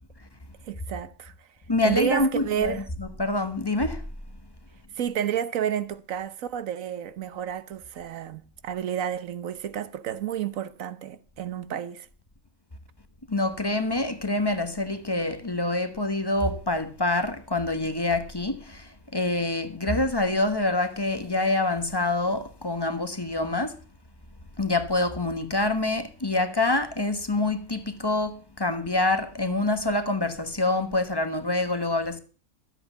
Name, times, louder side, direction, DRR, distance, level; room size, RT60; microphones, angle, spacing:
voice 1, 0.6-1.5 1.8-2.9 4.9-12.1, right 9 dB, 75° right, 1.3 m, -31 dB
voice 2, 1.7-4.0 13.3-23.8 24.6-32.2, left 2 dB, 20° left, 1.1 m, -26 dB
12.5 x 8.2 x 7.0 m
omnidirectional pair, 1.4 m